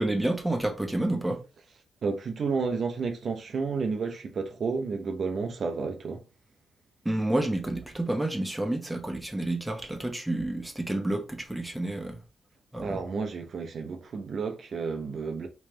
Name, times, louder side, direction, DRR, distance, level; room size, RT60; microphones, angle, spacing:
voice 1, 0.0-1.4 7.0-12.2 12.7-13.0, right 1 dB, 5° right, 0.9 m, -29 dB
voice 2, 2.0-6.2 12.8-15.5, right 4 dB, 55° right, 0.6 m, -31 dB
3.3 x 3.1 x 3.1 m
cardioid pair, 100°, 0 cm